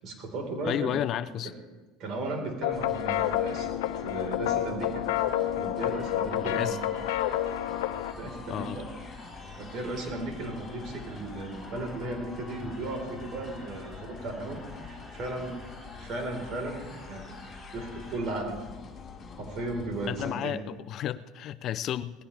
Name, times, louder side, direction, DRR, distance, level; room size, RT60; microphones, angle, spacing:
voice 1, 0.0-1.0 1.4-1.5 2.0-3.7 4.0-5.0 5.5-6.8 8.1-8.9 9.6-15.5 16.0-17.4 17.7-18.6 19.4-20.6, right 2 dB, 50° right, 2 dB, 4.5 m, -35 dB
voice 2, 0.6-1.5 6.4-6.8 8.5-8.8 20.1-22.2, left 11 dB, 50° left, 15 dB, 0.5 m, -32 dB
sound 1, 2.6-8.1, left 12 dB, 90° left, 0.9 m, -29 dB
sound 2, 2.7-20.3, left 5 dB, 30° left, 3.9 m, -46 dB
sound 3, 5.9-18.2, left 1 dB, 5° right, 6.6 m, -49 dB
19.5 x 15.5 x 3.5 m, 1.2 s
supercardioid pair, 115°, 0 cm